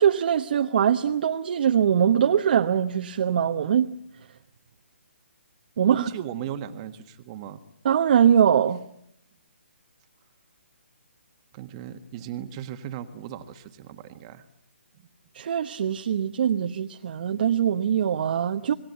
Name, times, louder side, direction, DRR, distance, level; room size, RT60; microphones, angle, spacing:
voice 1, 0.0-3.9 5.8-6.1 7.8-8.8 15.3-18.7, right 8 dB, 50° right, 1.1 m, -22 dB
voice 2, 5.9-7.6 11.5-14.4, right 10 dB, 30° right, 1.6 m, -36 dB
27.0 x 20.0 x 8.2 m
hypercardioid pair, 145°, 7 cm